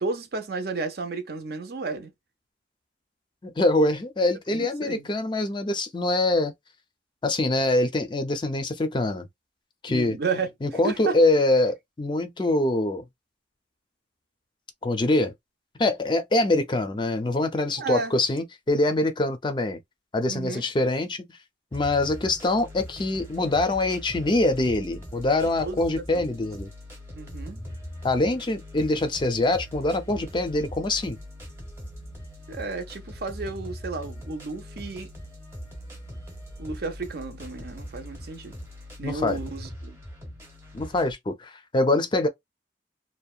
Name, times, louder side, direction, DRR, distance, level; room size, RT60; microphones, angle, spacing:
voice 1, 0.0-2.1 4.5-5.1 9.9-10.5 10.8-11.2 17.8-18.1 20.3-20.6 25.6-25.8 26.1-26.4 27.1-27.6 32.5-35.1 36.6-38.6 39.0-40.0, right 4 dB, 60° right, 0.6 m, -32 dB
voice 2, 3.4-6.5 7.2-9.3 9.8-10.2 10.6-13.0 14.8-15.3 15.8-19.8 20.1-21.3 21.7-26.7 28.0-31.2 39.0-39.4 40.7-42.3, left 2 dB, 25° left, 0.4 m, -24 dB
sound 1, 21.7-41.1, equal, 15° right, 0.8 m, -41 dB
2.7 x 2.1 x 2.3 m
head